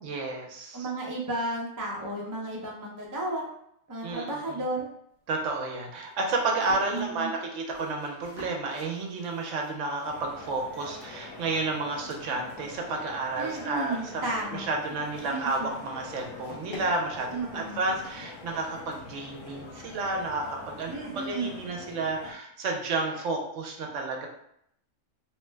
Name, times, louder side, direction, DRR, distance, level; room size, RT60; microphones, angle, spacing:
voice 1, 0.0-0.9 4.0-4.6 5.3-24.3, right 3 dB, 75° right, 1 dB, 0.9 m, -31 dB
voice 2, 0.7-3.4 3.9-4.9 6.9-7.3 13.4-14.6 15.3-15.7 17.3-17.8 20.9-21.5, right 2 dB, 25° right, -3 dB, 0.4 m, -33 dB
sound 1, 5.1-21.4, equal, 45° left, 0.9 m, -51 dB
sound 2, 10.0-22.3, left 3 dB, 75° left, 1.0 m, -45 dB
3.0 x 2.1 x 3.2 m, 0.73 s
omnidirectional pair, 1.3 m